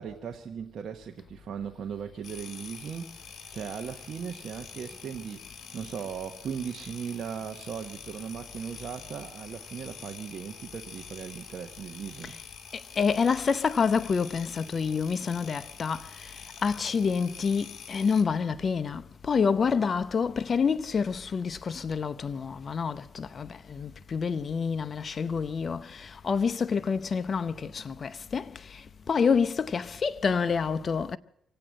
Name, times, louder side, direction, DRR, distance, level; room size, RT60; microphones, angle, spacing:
voice 1, 0.0-12.4, right 7 dB, 55° right, 1.1 m, -38 dB
sound 1, 2.2-18.2, left 7 dB, 60° left, 2.7 m, -46 dB
voice 2, 12.7-31.2, left 5 dB, 40° left, 0.7 m, -28 dB
24.5 x 8.7 x 6.3 m
cardioid pair, 90°, 0 cm